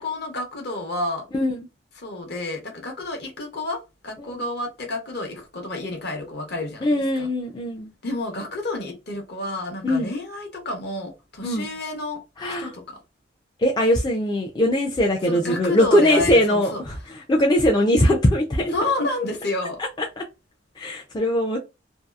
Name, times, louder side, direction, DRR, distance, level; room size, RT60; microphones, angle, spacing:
voice 1, 0.0-1.2 2.0-7.3 8.0-12.2 12.6-13.0 15.2-16.8 18.7-19.8, left 2 dB, 55° left, 0.8 m, -30 dB
voice 2, 1.3-1.7 4.2-4.4 6.8-7.9 9.8-10.1 11.4-11.7 12.4-12.7 13.6-18.7 20.0-20.2 20.8-21.6, left 1 dB, 20° left, 0.3 m, -21 dB
2.7 x 2.3 x 2.3 m
head